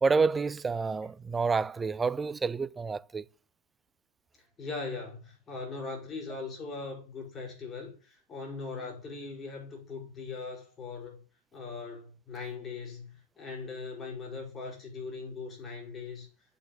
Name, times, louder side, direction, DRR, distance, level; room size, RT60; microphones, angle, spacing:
voice 1, 0.0-3.3, right 4 dB, 15° right, 0.5 m, -28 dB
voice 2, 4.6-11.2 11.5-16.3, left 4 dB, 25° left, 5.9 m, -40 dB
8.2 x 7.6 x 8.2 m
figure-of-eight pair, 90°, 0 cm